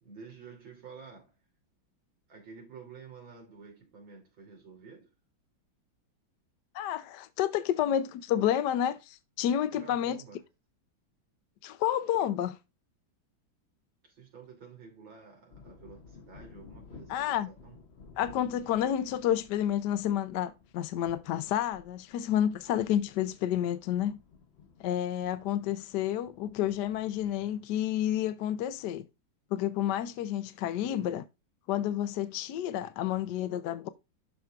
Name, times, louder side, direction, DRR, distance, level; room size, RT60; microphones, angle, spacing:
voice 1, 0.0-1.4 2.3-5.1 9.7-10.4 14.0-17.8 22.6-22.7, right 5 dB, 70° right, 3.8 m, -50 dB
voice 2, 6.7-10.2 11.6-12.6 17.1-17.5 18.2-24.2 24.8-29.1 29.5-31.3 31.7-33.9, left 11 dB, 70° left, 1.1 m, -30 dB
sound 1, 15.5-28.2, left 5 dB, 45° left, 0.9 m, -55 dB
12.5 x 4.5 x 2.4 m
omnidirectional pair, 2.2 m